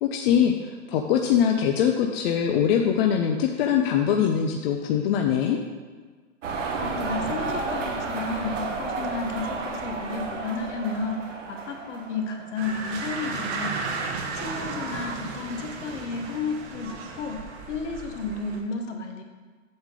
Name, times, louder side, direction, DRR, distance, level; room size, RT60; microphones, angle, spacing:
voice 1, 0.0-5.6, left 8 dB, 50° left, 3 dB, 0.7 m, -22 dB
sound 1, 6.4-12.6, right 4 dB, 80° right, 1.3 m, -32 dB
voice 2, 6.7-11.2 11.5-13.8 14.3-17.4 17.7-19.2, left 4 dB, 70° left, 3 dB, 1.4 m, -32 dB
sound 2, 12.6-18.6, right 4 dB, 60° right, 1.2 m, -34 dB
7.8 x 3.7 x 6.6 m, 1.5 s
hypercardioid pair, 120°, 37 cm